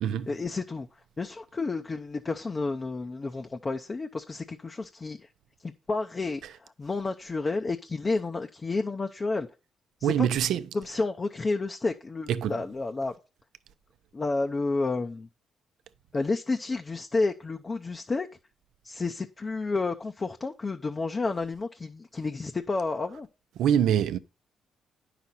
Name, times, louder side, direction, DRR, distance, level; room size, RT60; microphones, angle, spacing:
voice 1, 0.3-0.9 1.2-5.3 5.6-9.5 10.0-10.3 10.7-13.1 14.1-15.3 16.1-18.3 18.8-23.3, left 3 dB, 30° left, 0.7 m, -30 dB
voice 2, 10.0-10.6 12.4-12.6 23.6-24.2, right 9 dB, 80° right, 0.6 m, -24 dB
9.5 x 5.9 x 4.0 m
cardioid pair, 90°, 0 cm